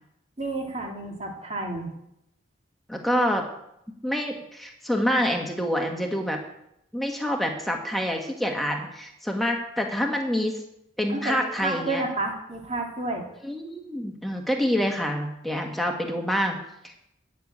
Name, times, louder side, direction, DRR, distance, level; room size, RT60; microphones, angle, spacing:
voice 1, 0.4-1.9 11.1-13.3, right 2 dB, 35° right, 1 dB, 2.4 m, -30 dB
voice 2, 2.9-3.4 4.0-6.4 6.9-10.6 11.0-12.0 13.4-17.0, equal, ahead, 1 dB, 1.7 m, -27 dB
12.5 x 6.7 x 8.9 m, 0.79 s
head